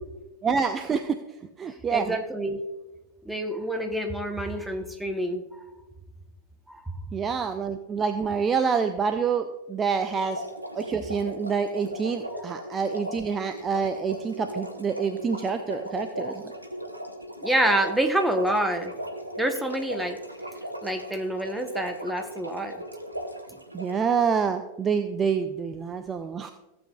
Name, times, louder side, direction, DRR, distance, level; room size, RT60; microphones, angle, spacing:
voice 1, 0.4-1.2 1.6-2.2 7.1-10.4 10.7-16.4 23.7-26.5, right 6 dB, 20° right, 9 dB, 0.5 m, -27 dB
voice 2, 1.9-2.6 3.3-5.6 6.7-6.9 17.4-18.9 19.4-20.2 20.8-22.8, right 1 dB, 5° right, 5 dB, 1.0 m, -27 dB
sound 1, 10.0-24.0, equal, 85° right, 1.0 m, -37 dB
15.5 x 7.9 x 2.3 m, 1.0 s
figure-of-eight pair, 90°, 0 cm